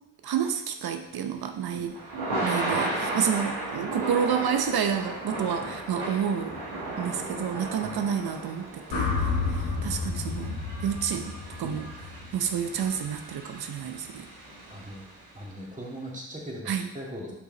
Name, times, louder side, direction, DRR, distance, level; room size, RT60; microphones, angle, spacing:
voice 1, 0.2-1.9 2.4-6.6 7.0-11.3 11.6-11.9 12.3-14.3 16.7-16.9, right 8 dB, 65° right, 6 dB, 0.7 m, -29 dB
Thunder / Rain, 1.2-15.4, right 2 dB, 85° right, 1.6 m, -35 dB
voice 2, 2.3-2.8 7.8-8.0 8.9-9.4 11.6-11.8 14.7-15.1 15.3-17.3, equal, 20° right, -3 dB, 2.3 m, -41 dB
sound 1, 8.9-13.1, left 4 dB, 90° left, 1.0 m, -31 dB
5.6 x 4.9 x 3.9 m, 0.95 s
supercardioid pair, 40°, 39 cm